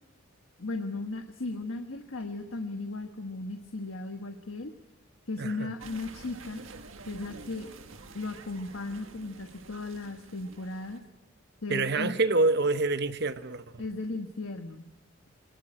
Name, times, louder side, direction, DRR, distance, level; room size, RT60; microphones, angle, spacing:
voice 1, 0.6-4.7 5.3-6.6 7.1-7.7 8.1-11.0 11.6-12.2 13.8-14.8, left 2 dB, 85° left, 1.4 m, -36 dB
voice 2, 5.4-5.7 11.7-13.8, right 3 dB, 55° right, 1.0 m, -27 dB
sound 1, 5.8-11.0, right 3 dB, 80° right, 1.7 m, -48 dB
24.0 x 19.5 x 9.0 m
head